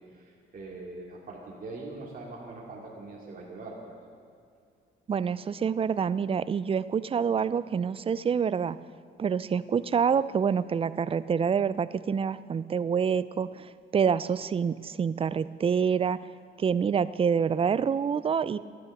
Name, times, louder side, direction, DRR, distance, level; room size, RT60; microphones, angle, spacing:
voice 1, 0.1-3.9, right 2 dB, 45° right, -3 dB, 2.5 m, -42 dB
voice 2, 5.1-8.8 9.2-16.2 16.6-18.6, right 7 dB, 30° right, 16 dB, 0.4 m, -27 dB
12.0 x 9.9 x 6.5 m, 2.4 s
cardioid pair, 90°, 20 cm